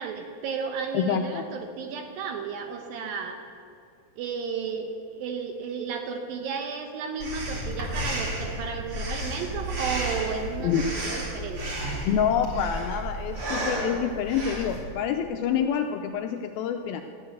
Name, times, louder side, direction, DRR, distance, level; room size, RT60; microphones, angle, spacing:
voice 1, 0.0-3.4 4.2-11.7, right 5 dB, 75° right, 4 dB, 2.3 m, -33 dB
voice 2, 0.9-1.4 10.6-10.9 12.0-17.0, left 8 dB, 85° left, 5 dB, 2.2 m, -27 dB
Breathing, 7.2-14.8, right 1 dB, 35° right, 3.1 m, -32 dB
12.5 x 8.9 x 7.8 m, 2.6 s
omnidirectional pair, 4.7 m